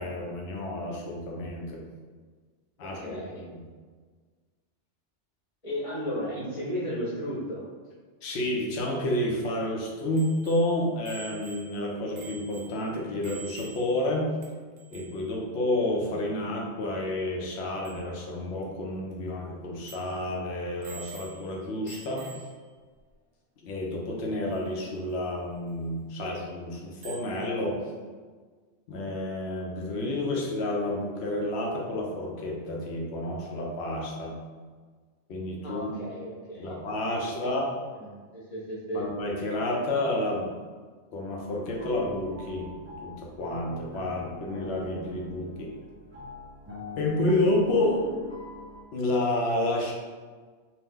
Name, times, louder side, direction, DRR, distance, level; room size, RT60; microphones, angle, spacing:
voice 1, 0.0-1.8 2.8-3.6 8.2-14.3 14.9-22.4 23.6-27.9 28.9-34.4 35.3-36.0 36.6-37.7 38.9-40.5 41.1-42.7 43.0-45.7 47.0-48.1 48.9-49.9, left 1 dB, 65° left, -1 dB, 0.8 m, -30 dB
voice 2, 2.8-3.4 5.6-7.6 35.6-36.8 37.3-37.5 38.0-39.1, equal, 30° left, -8 dB, 0.9 m, -34 dB
Bicycle bell, 10.2-14.1 14.4-14.5 14.8-15.3 17.5-17.6 17.9-18.1 18.6-18.7 19.1-19.2 19.8-20.2 20.8-21.6 21.9-22.7 24.5-24.6 27.0-27.4, right 5 dB, 70° right, 0.9 m, -47 dB
sound 1, 41.6-48.8, left 2 dB, 15° right, 0.7 m, -43 dB
2.8 x 2.2 x 3.5 m, 1.5 s
omnidirectional pair, 1.2 m